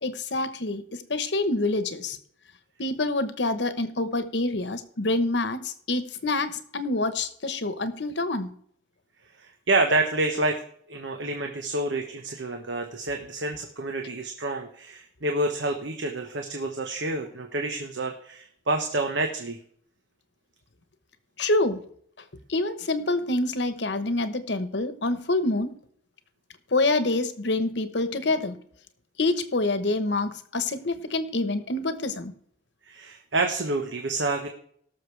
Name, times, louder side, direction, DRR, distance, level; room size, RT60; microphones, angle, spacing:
voice 1, 0.0-2.2 2.8-8.5 21.4-21.8 22.5-25.8 26.7-28.6 29.2-32.3, left 2 dB, 75° left, 11 dB, 1.1 m, -26 dB
voice 2, 9.4-10.6 10.9-19.6 32.8-34.5, right 2 dB, 90° right, 4 dB, 1.2 m, -28 dB
18.5 x 6.7 x 3.3 m, 0.62 s
head